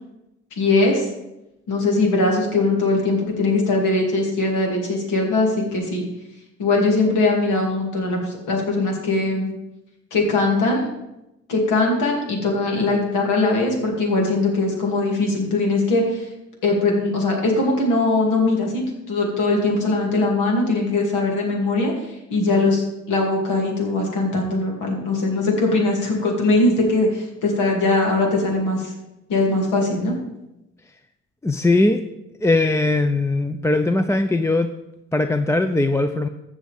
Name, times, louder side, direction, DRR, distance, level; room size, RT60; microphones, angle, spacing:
voice 1, 0.6-1.1 1.7-6.0 6.6-9.5 10.1-10.9 11.5-16.3 16.6-28.9 29.3-30.1, left 2 dB, 85° left, 0 dB, 2.7 m, -21 dB
voice 2, 31.4-32.0 32.4-34.7 35.1-36.3, left 2 dB, 10° left, 8 dB, 0.4 m, -19 dB
15.0 x 6.3 x 3.6 m, 0.91 s
cardioid pair, 90°, 30 cm